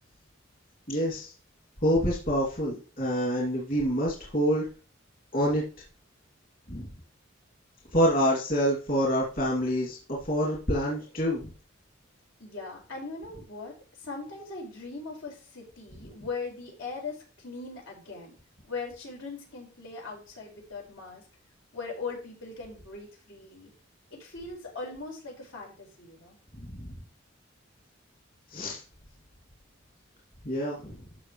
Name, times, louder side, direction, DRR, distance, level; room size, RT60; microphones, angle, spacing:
voice 1, 0.9-1.3 1.8-4.7 5.3-5.6 6.7-6.9 7.9-11.4 26.7-26.9 28.5-28.8 30.4-31.0, equal, 45° left, -4 dB, 2.7 m, -27 dB
voice 2, 12.4-18.3 18.6-21.2 21.7-23.7 24.1-26.4, left 4 dB, 85° left, -2 dB, 5.2 m, -40 dB
13.0 x 6.3 x 3.2 m, 0.36 s
head